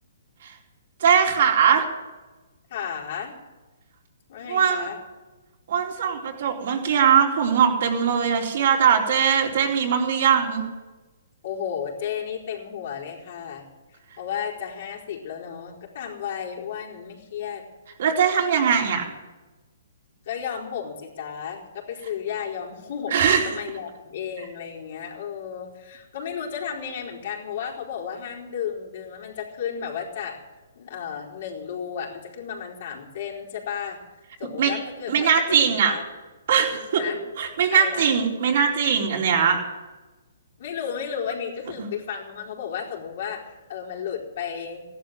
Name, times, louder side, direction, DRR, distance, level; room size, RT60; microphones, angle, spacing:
voice 1, 1.0-1.8 4.5-4.9 5.7-10.7 18.0-19.0 23.1-23.4 34.6-34.7 35.1-35.9 36.5-37.0 37.4-39.6, right 7 dB, 60° right, 0 dB, 4.1 m, -20 dB
voice 2, 2.7-3.3 4.3-5.0 11.4-13.7 14.2-17.6 20.2-30.4 30.8-34.0 34.4-36.0 37.0-37.2 37.7-38.3 40.6-44.8, left 7 dB, 55° left, -2 dB, 4.4 m, -33 dB
16.0 x 12.0 x 7.8 m, 1.2 s
hypercardioid pair, 150°, 0 cm